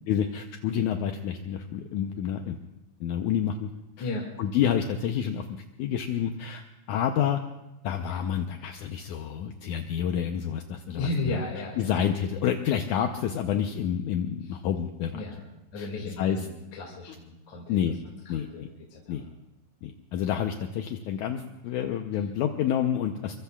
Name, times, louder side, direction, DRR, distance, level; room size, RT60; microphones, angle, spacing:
voice 1, 0.1-2.6 3.0-3.7 4.0-4.1 4.4-7.4 7.8-11.4 11.8-15.2 15.8-15.9 16.2-16.5 17.7-18.0 18.3-18.7 19.1-19.3 19.8-23.4, left 9 dB, 75° left, 5 dB, 1.8 m, -29 dB
voice 2, 10.9-11.9 15.1-15.5 15.7-17.8 18.0-19.3, left 2 dB, 55° left, -2 dB, 3.4 m, -34 dB
24.5 x 23.5 x 2.4 m, 1.0 s
omnidirectional pair, 4.3 m